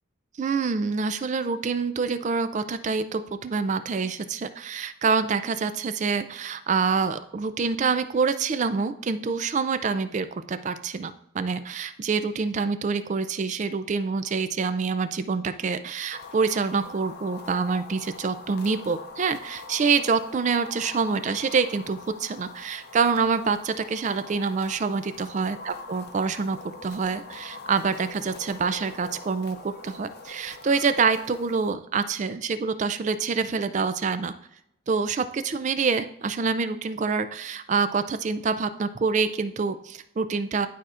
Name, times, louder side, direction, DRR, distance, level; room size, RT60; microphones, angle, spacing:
voice 1, 0.4-34.3 34.9-40.7, right 5 dB, 35° right, 11 dB, 0.3 m, -26 dB
sound 1, 16.1-31.7, left 4 dB, 50° left, 0.6 m, -44 dB
11.0 x 4.2 x 2.4 m, 0.78 s
head